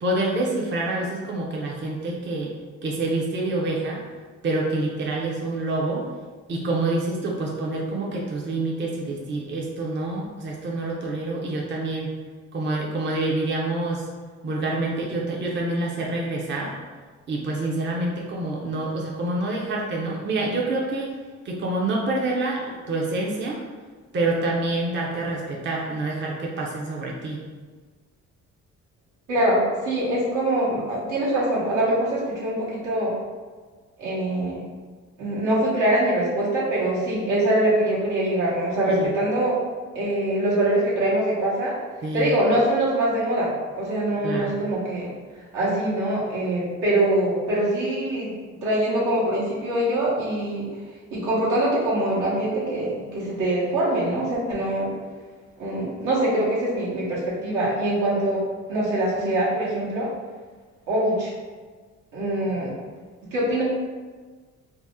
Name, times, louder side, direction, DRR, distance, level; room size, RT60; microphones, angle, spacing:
voice 1, 0.0-2.5 2.8-4.0 4.4-6.1 6.5-12.1 12.5-14.1 14.4-16.7 17.3-21.1 21.4-23.6 24.1-27.4 38.9-39.1 42.0-42.4 44.2-44.6, right 2 dB, 40° right, -2 dB, 0.5 m, -27 dB
voice 2, 29.3-33.1 34.0-34.7 35.2-39.6 39.9-41.7 42.1-45.1 45.5-48.3 48.6-50.7 51.1-54.9 55.6-58.4 58.7-60.1 60.9-61.3 62.1-62.7 63.3-63.6, right 1 dB, 85° right, -7 dB, 1.1 m, -23 dB
2.8 x 2.0 x 3.5 m, 1.4 s
cardioid pair, 90°, 30 cm